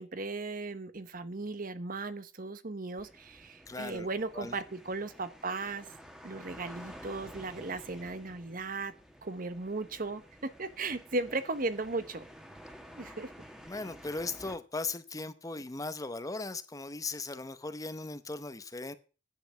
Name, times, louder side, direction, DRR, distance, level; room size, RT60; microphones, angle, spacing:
voice 1, 0.0-5.9 6.2-8.9 9.2-12.3 13.0-13.3, right 3 dB, 50° right, 0.9 m, -36 dB
sound 1, 3.0-14.6, equal, 5° right, 1.6 m, -51 dB
voice 2, 3.7-4.1 4.3-4.5 13.7-18.9, left 3 dB, 20° left, 0.7 m, -38 dB
10.5 x 7.8 x 7.0 m
head